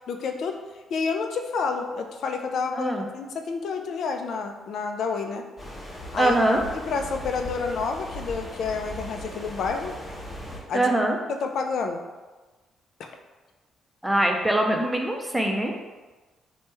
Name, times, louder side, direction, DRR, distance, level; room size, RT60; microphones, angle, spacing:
voice 1, 0.1-0.6 0.9-5.4 6.1-6.4 6.7-9.9 10.7-10.9 11.3-12.0 13.0-13.1, left 5 dB, 70° left, 5 dB, 0.3 m, -29 dB
voice 2, 2.7-3.0 6.2-6.6 10.7-11.2 14.0-15.7, right 1 dB, 5° right, 1 dB, 0.4 m, -23 dB
sound 1, 5.6-10.6, equal, 30° left, 1.3 m, -38 dB
3.0 x 2.1 x 3.3 m, 1.2 s
cardioid pair, 90°, 0 cm